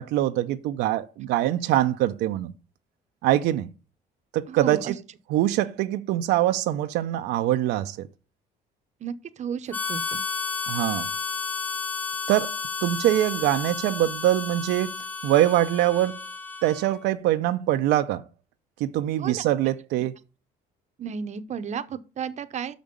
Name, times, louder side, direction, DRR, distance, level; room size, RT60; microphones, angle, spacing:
voice 1, 0.0-2.5 3.2-3.7 4.3-5.0 5.3-8.1 10.7-11.1 12.3-14.9 15.2-16.2 16.6-18.2 18.8-20.1, right 14 dB, 85° right, 0.7 m, -23 dB
voice 2, 4.5-4.9 9.0-10.2 19.2-19.4 21.0-22.8, right 7 dB, 45° right, 0.8 m, -33 dB
Harmonica, 9.7-17.0, left 5 dB, 10° left, 0.6 m, -32 dB
6.1 x 5.2 x 6.7 m
cardioid pair, 110°, 17 cm